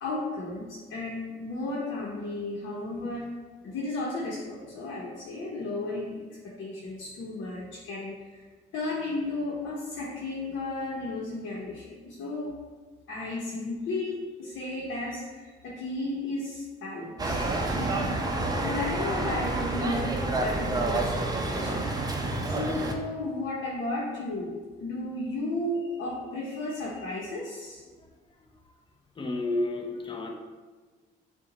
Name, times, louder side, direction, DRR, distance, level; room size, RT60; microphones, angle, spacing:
voice 1, 0.0-3.3 3.6-8.4 8.7-12.6 13.1-21.8 22.5-27.8, left 2 dB, 75° left, -5 dB, 0.8 m, -34 dB
sound 1, 17.2-22.9, right 2 dB, 20° right, 0.6 m, -29 dB
voice 2, 29.2-30.3, left 2 dB, 25° left, 3 dB, 0.6 m, -30 dB
5.6 x 2.2 x 3.9 m, 1.4 s
cardioid pair, 90°, 20 cm